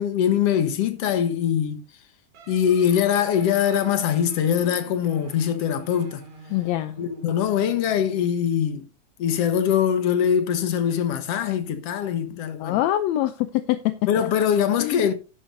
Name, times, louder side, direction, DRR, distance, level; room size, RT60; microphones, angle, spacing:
voice 1, 0.0-1.8 2.5-6.2 7.0-8.9 9.2-12.8 14.1-15.1, left 9 dB, 60° left, 2.1 m, -22 dB
sound 1, 2.3-8.4, right 2 dB, 85° right, 4.1 m, -45 dB
voice 2, 6.5-6.9 12.6-14.1 14.8-15.1, left 14 dB, 75° left, 1.7 m, -24 dB
11.0 x 11.0 x 2.7 m
omnidirectional pair, 3.6 m